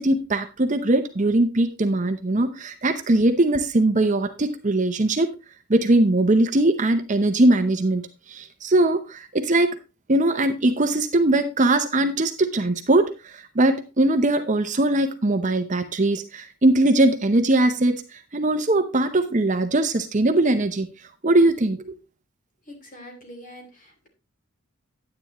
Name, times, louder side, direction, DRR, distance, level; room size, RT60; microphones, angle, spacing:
voice 1, 0.0-5.3 5.7-9.7 10.1-20.9 21.2-21.9, right 2 dB, 35° right, 0.7 m, -21 dB
voice 2, 22.7-24.1, equal, 35° left, 2.9 m, -44 dB
9.9 x 9.6 x 3.0 m
head